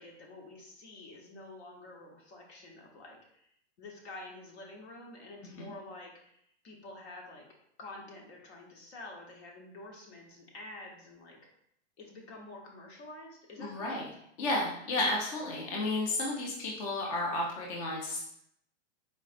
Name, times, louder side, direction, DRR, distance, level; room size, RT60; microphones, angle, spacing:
voice 1, 0.0-3.5 3.8-7.5 7.8-11.4 12.0-14.0, left 2 dB, 65° left, 0 dB, 1.1 m, -48 dB
voice 2, 13.6-14.1 14.4-18.2, left 2 dB, 30° left, -2 dB, 0.4 m, -32 dB
4.1 x 3.0 x 2.4 m, 0.73 s
supercardioid pair, 165°, 36 cm